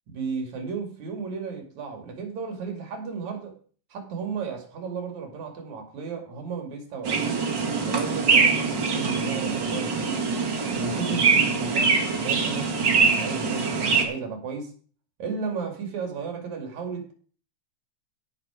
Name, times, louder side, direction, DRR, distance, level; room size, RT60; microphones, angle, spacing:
voice 1, 0.1-3.5 3.9-7.5 7.8-10.3 10.7-14.7 15.2-17.1, right 5 dB, 70° right, 3.6 m, -34 dB
sound 1, 7.1-14.1, right 5 dB, 40° right, 2.5 m, -23 dB
16.5 x 5.8 x 4.9 m
omnidirectional pair, 3.4 m